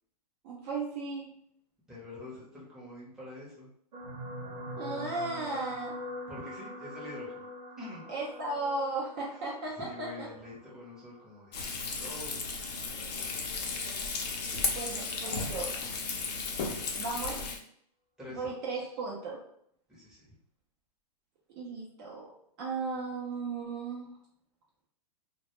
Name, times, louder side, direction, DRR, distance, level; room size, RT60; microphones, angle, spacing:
voice 1, 0.4-1.4 4.8-6.0 8.1-10.3 14.5-15.7 16.9-17.5 18.3-19.4 21.6-22.3 22.6-24.2, right 3 dB, 35° right, -4 dB, 0.5 m, -36 dB
voice 2, 1.9-3.7 6.3-7.5 7.8-8.0 9.3-9.4 9.8-11.6 12.0-12.5 18.2-18.9 19.9-20.3, left 2 dB, 5° right, -8 dB, 0.7 m, -46 dB
sound 1, 3.9-12.4 13.1-13.4 13.7-13.8, equal, 85° right, 0.6 m, -44 dB
Frying (food), 11.5-17.6, left 4 dB, 70° left, 0.6 m, -34 dB
2.1 x 2.0 x 2.9 m, 0.68 s
hypercardioid pair, 150°, 21 cm